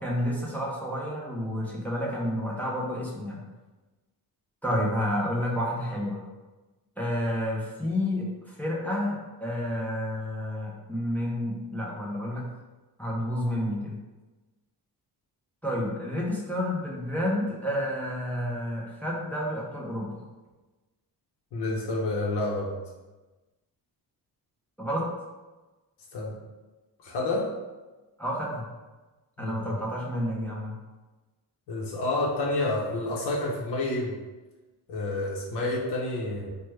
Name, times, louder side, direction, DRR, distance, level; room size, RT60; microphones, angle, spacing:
voice 1, 0.0-3.4 4.6-6.2 7.0-12.5 13.0-14.0 15.6-20.2 24.8-25.1 28.2-28.7 29.4-30.8, equal, 5° left, -4 dB, 0.4 m, -30 dB
voice 2, 21.5-22.7 26.1-26.4 27.0-27.5 29.4-29.8 31.7-34.1 34.9-36.5, left 2 dB, 85° left, -3 dB, 0.7 m, -29 dB
3.1 x 2.2 x 3.1 m, 1.2 s
wide cardioid pair, 140°, 39 cm